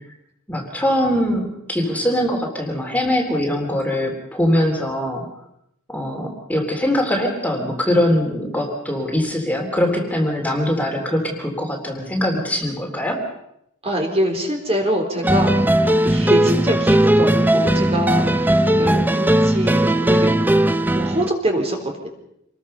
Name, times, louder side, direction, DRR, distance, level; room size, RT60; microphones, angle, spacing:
voice 1, 0.5-5.2 5.9-13.2, left 1 dB, 5° left, 1 dB, 3.5 m, -22 dB
voice 2, 13.8-20.3 20.9-22.1, equal, 30° right, 2 dB, 4.1 m, -24 dB
sound 1, 15.2-21.3, right 1 dB, 10° right, 0.8 m, -17 dB
27.0 x 21.0 x 5.6 m, 0.79 s
head